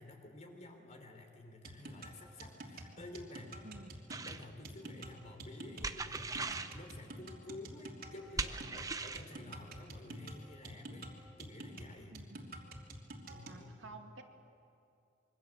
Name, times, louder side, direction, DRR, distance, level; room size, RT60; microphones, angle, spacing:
voice 1, 0.0-3.7 4.2-12.2 13.3-13.9, left 2 dB, 40° left, 4 dB, 3.6 m, -52 dB
sound 1, 1.6-13.6, right 1 dB, 50° right, 3.1 m, -48 dB
voice 2, 3.6-4.0 12.1-12.5 13.5-14.2, right 3 dB, 80° right, 3 dB, 2.4 m, -52 dB
sound 2, 4.1-4.4 5.8-6.8 8.4-9.3, right 3 dB, 20° right, 0.8 m, -39 dB
26.0 x 23.5 x 7.6 m, 2.6 s
head